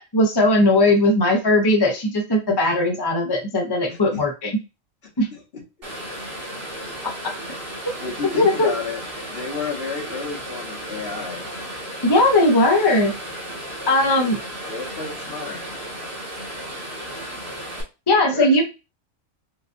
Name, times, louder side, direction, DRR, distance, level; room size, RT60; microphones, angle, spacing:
voice 1, 0.0-4.5 5.2-5.3 8.3-8.7 12.0-13.1 13.9-14.4 18.1-18.6, left 1 dB, 25° left, 1 dB, 0.6 m, -18 dB
voice 2, 3.9-4.2 5.3-5.6 8.0-9.0 9.3-11.4 14.1-14.3 14.7-15.6 18.3-18.5, left 5 dB, 50° left, -1 dB, 1.4 m, -31 dB
sound 1, 5.8-17.8, right 1 dB, 45° right, 1.6 m, -34 dB
4.8 x 2.4 x 2.5 m, 0.28 s
omnidirectional pair, 1.4 m